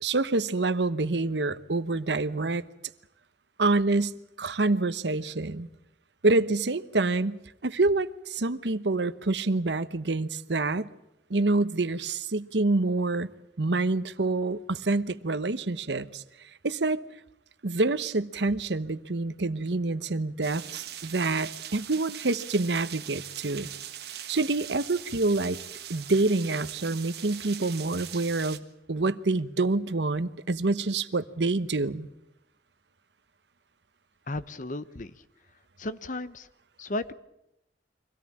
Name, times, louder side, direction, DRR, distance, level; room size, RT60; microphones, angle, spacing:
voice 1, 0.0-2.6 3.6-5.7 6.2-10.9 11.3-13.3 13.6-16.2 16.6-17.0 17.6-23.7 24.3-25.6 25.9-28.6 28.9-32.1, right 3 dB, 85° right, 1.0 m, -27 dB
sound 1, 20.4-28.6, right 11 dB, 65° right, 1.5 m, -41 dB
voice 2, 34.3-35.2 35.8-36.5 36.8-37.1, left 2 dB, 45° left, 0.9 m, -34 dB
24.5 x 17.5 x 8.6 m
head